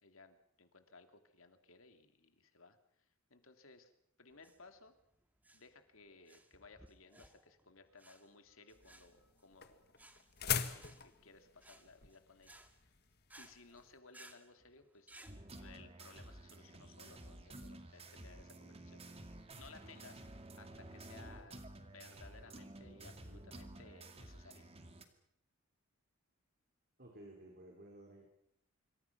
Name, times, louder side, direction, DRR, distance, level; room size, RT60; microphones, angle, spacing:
voice 1, 0.0-3.9 4.2-4.9 5.5-9.9 10.4-12.9 13.4-15.1 15.6-20.3 20.6-24.7, left 3 dB, 65° left, 7 dB, 2.7 m, -60 dB
sound 1, 4.3-15.4, right 1 dB, 10° right, 2.0 m, -62 dB
sound 2, 8.7-13.9, left 8 dB, 50° left, 1.8 m, -41 dB
sound 3, 15.3-25.0, right 1 dB, 30° right, 2.4 m, -52 dB
voice 2, 27.0-28.3, right 1 dB, 45° right, 0 dB, 4.9 m, -55 dB
26.5 x 24.5 x 6.0 m, 0.75 s
head